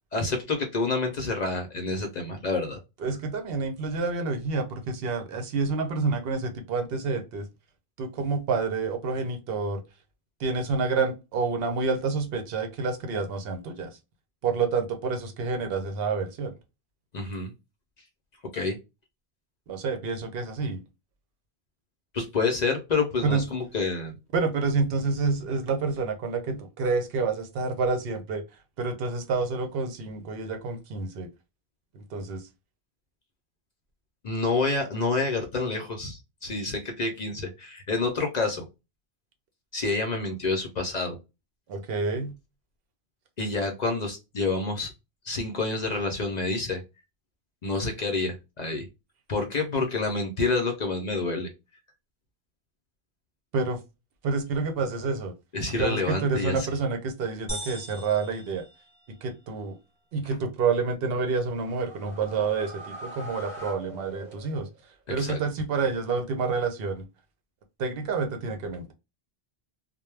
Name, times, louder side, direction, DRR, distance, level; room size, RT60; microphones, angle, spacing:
voice 1, 0.1-2.8 17.1-17.5 18.5-18.8 22.1-24.1 34.2-38.6 39.7-41.2 43.4-44.9 45.2-46.8 47.6-48.8 49.3-51.5 55.5-56.7 60.2-60.3 65.1-65.4, left 3 dB, 50° left, 0.6 m, -28 dB
voice 2, 3.0-7.5 8.0-9.8 10.4-13.9 14.4-16.5 19.7-20.8 23.2-23.5 24.3-28.4 28.8-31.3 31.9-32.4 41.7-42.3 53.5-53.8 54.2-55.3 55.7-58.6 59.2-59.8 60.1-64.7 65.1-67.0 67.8-68.9, right 4 dB, 70° right, 0.8 m, -28 dB
sound 1, 57.5-59.4, equal, 5° left, 1.2 m, -39 dB
sound 2, 61.2-64.9, right 1 dB, 45° right, 0.9 m, -43 dB
2.2 x 2.0 x 3.1 m
omnidirectional pair, 1.1 m